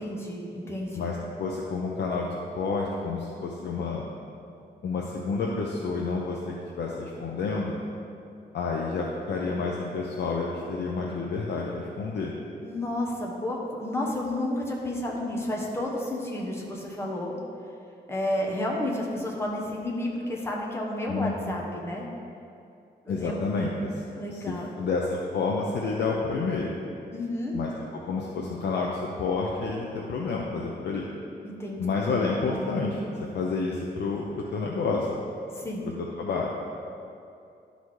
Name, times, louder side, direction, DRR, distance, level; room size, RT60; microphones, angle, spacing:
voice 1, 0.0-1.1 12.6-17.4 18.1-22.1 23.0-23.3 24.2-24.7 27.1-27.6 31.4-31.8 35.5-35.9, left 1 dB, 15° left, -2 dB, 1.0 m, -31 dB
voice 2, 0.9-2.3 2.5-4.0 4.8-7.8 8.5-12.3 21.1-21.6 23.1-23.9 24.5-26.7 27.5-28.9 29.2-31.1 31.8-33.0 33.3-35.1 36.2-36.5, left 4 dB, 75° left, -2 dB, 0.7 m, -29 dB
11.5 x 4.1 x 4.8 m, 2.6 s
wide cardioid pair, 170°, 18 cm